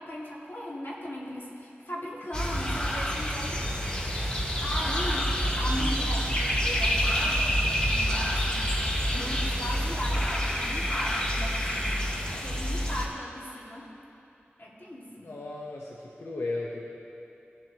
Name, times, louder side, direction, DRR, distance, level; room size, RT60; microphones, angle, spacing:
voice 1, 0.0-4.0 4.6-8.8 9.1-12.0 12.4-13.9 14.6-15.3, left 1 dB, 55° left, -5 dB, 2.1 m, -38 dB
sound 1, 2.3-13.1, equal, 20° left, 1.1 m, -27 dB
voice 2, 15.2-16.9, left 2 dB, 85° left, -3 dB, 0.8 m, -35 dB
17.5 x 7.7 x 2.9 m, 2.8 s
wide cardioid pair, 60°, 4 cm